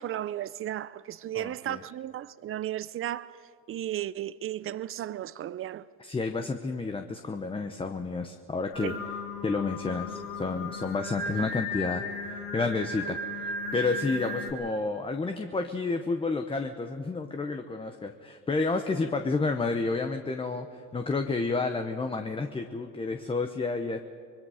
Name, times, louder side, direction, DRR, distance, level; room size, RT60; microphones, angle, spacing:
voice 1, 0.0-3.4 3.7-5.8 8.8-9.0, right 12 dB, 35° right, 0.6 m, -34 dB
voice 2, 1.3-1.8 6.0-9.2 9.4-24.0, left 3 dB, 15° left, 0.8 m, -30 dB
Singing, 8.7-14.5, left 2 dB, 50° left, 3.9 m, -35 dB
25.0 x 22.0 x 5.0 m
cardioid pair, 115°, 37 cm